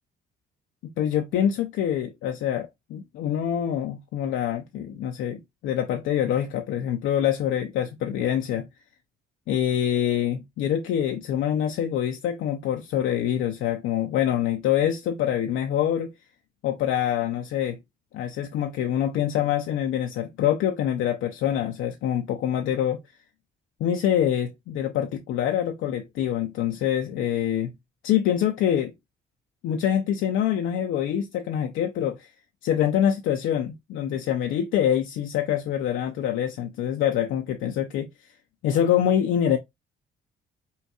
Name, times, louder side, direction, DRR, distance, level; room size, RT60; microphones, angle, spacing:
voice 1, 1.0-8.7 9.5-16.1 16.6-17.8 18.1-23.0 23.8-27.7 28.0-28.9 29.6-32.3 32.6-38.1 38.6-39.6, left 10 dB, 85° left, 0.6 m, -25 dB
5.6 x 2.3 x 2.9 m
cardioid pair, 90°, 20 cm